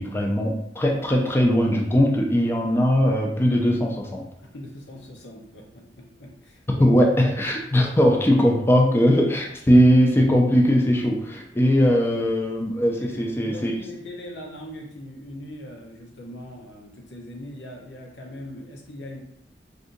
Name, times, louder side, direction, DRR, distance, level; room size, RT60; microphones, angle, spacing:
voice 1, 0.0-4.2 6.8-13.7, equal, 15° left, 0 dB, 0.4 m, -20 dB
voice 2, 4.4-6.9 11.5-11.8 13.0-19.2, left 1 dB, 85° left, -1 dB, 0.8 m, -40 dB
2.6 x 2.6 x 3.7 m, 0.72 s
head